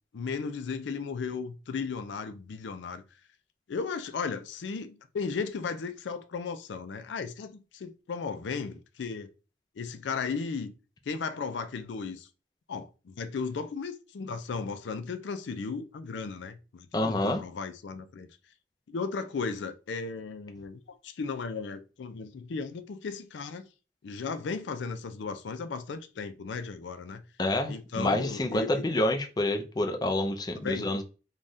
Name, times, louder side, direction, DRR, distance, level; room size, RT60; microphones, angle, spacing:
voice 1, 0.1-3.0 3.7-9.3 9.8-10.7 11.1-12.3 12.7-18.3 18.9-23.7 24.0-27.2 27.7-28.7 30.5-31.0, left 5 dB, 90° left, 0.4 m, -35 dB
voice 2, 16.9-17.4 27.4-31.0, left 1 dB, 25° left, 0.4 m, -28 dB
3.4 x 2.3 x 2.6 m
head